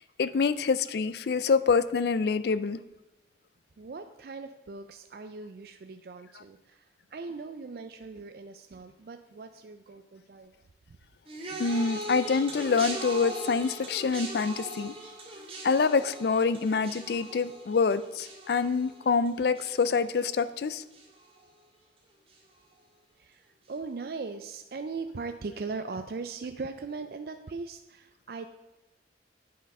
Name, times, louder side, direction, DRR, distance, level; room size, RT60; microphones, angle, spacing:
voice 1, 0.2-2.8 11.6-14.9 15.6-20.8, left 5 dB, 65° left, 15 dB, 0.4 m, -26 dB
voice 2, 3.8-10.6 23.2-28.5, right 4 dB, 55° right, 7 dB, 0.4 m, -39 dB
sound 1, 11.3-20.6 20.9-21.4 22.3-22.4, right 2 dB, 30° right, 1.8 m, -40 dB
8.6 x 5.7 x 5.3 m, 1.0 s
head